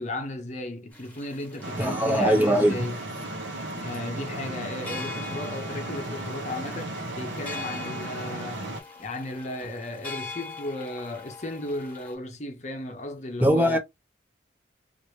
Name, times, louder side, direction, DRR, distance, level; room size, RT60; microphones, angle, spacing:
voice 1, 0.0-2.9 3.7-8.6 9.0-13.8, left 1 dB, 40° left, 0.7 m, -35 dB
sound 1, 0.9-12.1, left 4 dB, 10° left, 1.2 m, -43 dB
sound 2, 1.6-8.8, right 1 dB, 80° right, 0.8 m, -35 dB
voice 2, 1.8-2.8 13.4-13.8, right 1 dB, 10° right, 0.6 m, -21 dB
3.0 x 2.5 x 2.9 m
head